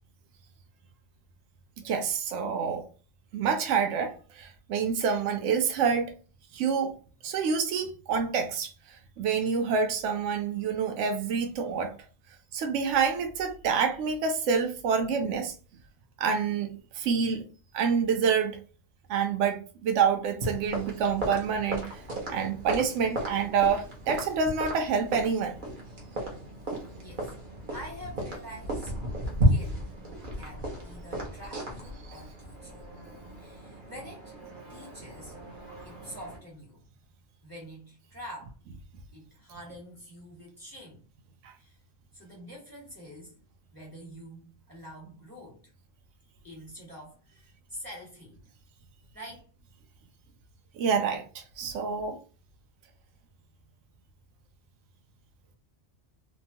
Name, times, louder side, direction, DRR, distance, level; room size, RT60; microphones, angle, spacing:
voice 1, 1.8-2.8 3.3-6.1 6.5-6.9 7.2-11.9 12.5-15.5 16.2-17.4 17.7-18.6 19.1-22.0 22.3-25.6 50.8-52.2, right 6 dB, 70° right, 0.9 m, -27 dB
sound 1, 20.4-36.4, right 1 dB, 45° right, 0.9 m, -34 dB
voice 2, 27.0-28.9 29.4-29.8 30.3-32.8 33.3-34.4 34.7-35.4 35.8-36.8 37.4-38.5 39.1-41.0 41.6-41.8 42.1-43.4 43.7-44.4 44.7-45.6 46.4-48.4 49.1-49.4, equal, 15° right, 1.3 m, -46 dB
2.8 x 2.2 x 2.7 m
omnidirectional pair, 1.3 m